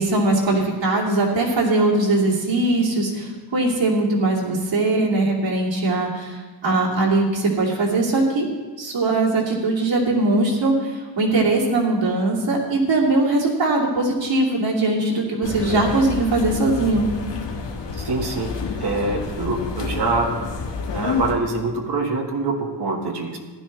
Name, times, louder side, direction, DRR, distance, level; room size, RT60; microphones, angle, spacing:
voice 1, 0.0-8.5 8.8-17.1, right 2 dB, 85° right, -3 dB, 2.7 m, -20 dB
sound 1, 15.4-21.4, left 5 dB, 70° left, 1.4 m, -29 dB
voice 2, 18.0-18.5 18.8-20.3 20.9-23.4, right 3 dB, 60° right, 1 dB, 1.7 m, -24 dB
15.0 x 12.0 x 3.3 m, 1.3 s
wide cardioid pair, 150°, 44 cm